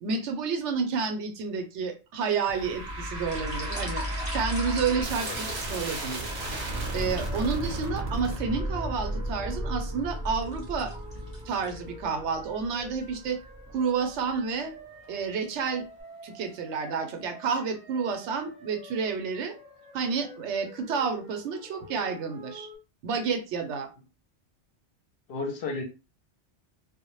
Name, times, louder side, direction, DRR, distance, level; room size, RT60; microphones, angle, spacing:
voice 1, 0.0-6.3 6.9-13.4 13.7-14.7 15.1-15.8 16.2-19.5 19.9-22.7 23.0-23.9, right 5 dB, 80° right, 6 dB, 0.9 m, -30 dB
sound 1, 2.5-13.7, right 1 dB, 45° right, 0.7 m, -34 dB
sound 2, 3.1-6.6 7.1-7.3 8.1-8.8 9.4-12.2 12.5-12.6 13.1-13.2 13.7-13.9 14.7-15.2 15.8-16.0 16.3-16.9 17.2-17.3, equal, 15° left, 0.8 m, -43 dB
sound 3, 3.5-22.8, equal, 10° right, 0.5 m, -49 dB
voice 2, 5.2-5.6 25.3-25.8, left 3 dB, 60° left, 3 dB, 0.7 m, -34 dB
2.1 x 2.0 x 3.0 m, 0.31 s
omnidirectional pair, 1.2 m